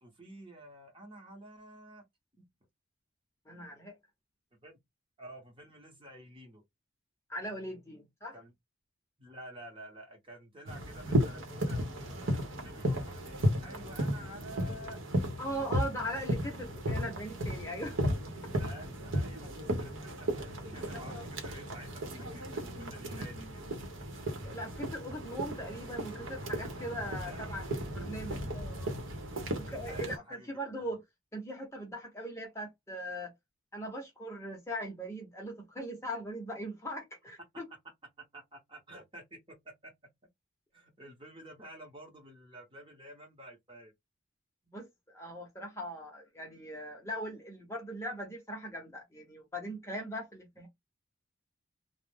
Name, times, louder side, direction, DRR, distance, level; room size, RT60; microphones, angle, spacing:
voice 1, 0.0-2.1 2.4-2.5 4.6-4.8 5.2-6.6 8.3-8.5 9.2-15.0 18.6-23.7 27.2-27.6 29.9-30.5 30.8-30.9 38.2-39.9 40.7-43.9, right 1 dB, 25° right, 0.8 m, -50 dB
voice 2, 3.5-4.0 7.3-8.3 15.4-18.0 20.9-21.2 24.4-27.7 27.9-28.9 29.6-31.0 31.3-33.3 33.7-37.6 44.7-50.7, equal, 15° left, 0.7 m, -40 dB
sound 1, 10.7-30.2, equal, 75° right, 0.8 m, -35 dB
2.4 x 2.0 x 3.3 m
head